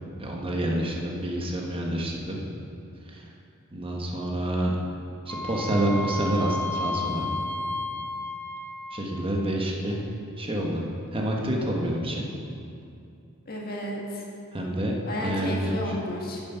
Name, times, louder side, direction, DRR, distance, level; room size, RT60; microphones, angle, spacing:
voice 1, 0.2-2.4 3.1-3.3 3.7-4.7 5.3-7.3 8.9-10.0 10.4-10.8 11.1-12.3 14.5-14.9 15.2-15.7, right 1 dB, 25° right, -1 dB, 1.1 m, -28 dB
Wind instrument woodwind instrument, 5.3-9.2, left 2 dB, 10° left, 0.5 m, -32 dB
voice 2, 13.5-14.2 15.0-16.4, equal, 45° left, -2 dB, 1.6 m, -33 dB
9.8 x 7.1 x 5.8 m, 2.5 s
head